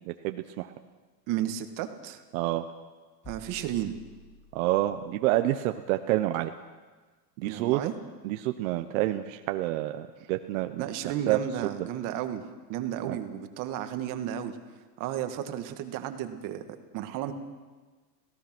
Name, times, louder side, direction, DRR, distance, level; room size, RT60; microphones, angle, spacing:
voice 1, 0.1-0.7 2.3-2.6 4.5-6.5 7.4-7.8 8.2-11.4 13.0-13.2, right 15 dB, 55° right, 7 dB, 1.0 m, -28 dB
voice 2, 1.3-2.2 3.3-4.0 7.4-7.9 10.8-12.4 12.7-14.6 15.0-16.6 16.9-17.3, right 11 dB, 40° right, 8 dB, 1.7 m, -33 dB
sound 1, 3.2-5.1, left 1 dB, 15° left, 6.9 m, -50 dB
26.5 x 17.0 x 6.1 m, 1.3 s
supercardioid pair, 150°, 50 cm